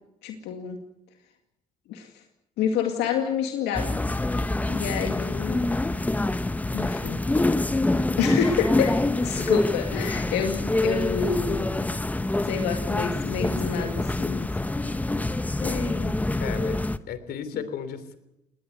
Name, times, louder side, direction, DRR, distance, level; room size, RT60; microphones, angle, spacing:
voice 1, 0.2-0.8 1.9-2.2 2.6-4.0 4.7-5.6 6.7-7.2 8.2-11.8 12.4-14.5 15.6-16.2 17.5-17.6, left 7 dB, 90° left, 4 dB, 2.2 m, -28 dB
sound 1, 3.7-17.0, left 2 dB, 10° left, 0.8 m, -26 dB
voice 2, 16.4-16.8 17.1-18.2, left 7 dB, 70° left, 12 dB, 3.3 m, -34 dB
20.5 x 19.5 x 8.1 m, 0.88 s
cardioid pair, 110°, 17 cm